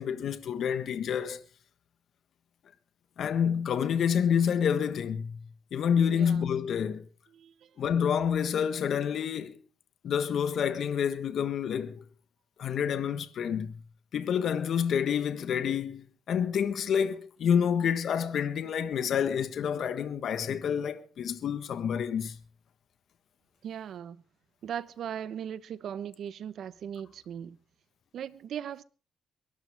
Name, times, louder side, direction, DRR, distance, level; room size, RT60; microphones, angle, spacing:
voice 1, 0.0-1.4 3.2-5.4 5.7-7.1 7.8-9.6 10.0-12.0 12.6-13.7 14.1-22.4, left 8 dB, 65° left, 1.5 m, -28 dB
voice 2, 6.1-6.5 7.3-7.7 23.6-24.2 24.6-27.6 28.1-28.8, right 9 dB, 65° right, 1.1 m, -38 dB
23.0 x 13.0 x 3.6 m
cardioid pair, 90°, 0 cm